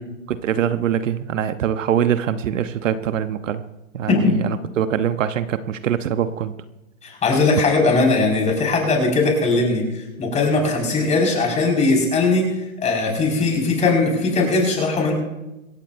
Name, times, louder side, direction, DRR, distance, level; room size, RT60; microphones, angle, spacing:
voice 1, 0.3-3.6 3.9-6.5, right 9 dB, 65° right, 11 dB, 1.0 m, -23 dB
voice 2, 4.1-4.4 7.0-15.1, left 3 dB, 15° left, 0 dB, 5.1 m, -19 dB
26.5 x 14.5 x 2.6 m, 1.0 s
hypercardioid pair, 135°, 41 cm